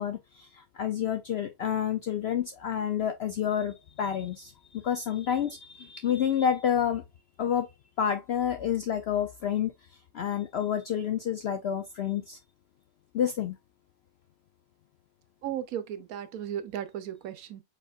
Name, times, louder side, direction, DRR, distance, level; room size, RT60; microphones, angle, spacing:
voice 1, 0.0-7.0 7.4-7.7 8.0-9.7 10.1-12.4 13.1-13.6, left 9 dB, 75° left, 0.6 m, -29 dB
voice 2, 15.4-17.6, right 10 dB, 75° right, 1.1 m, -35 dB
4.5 x 4.2 x 2.4 m
omnidirectional pair, 1.6 m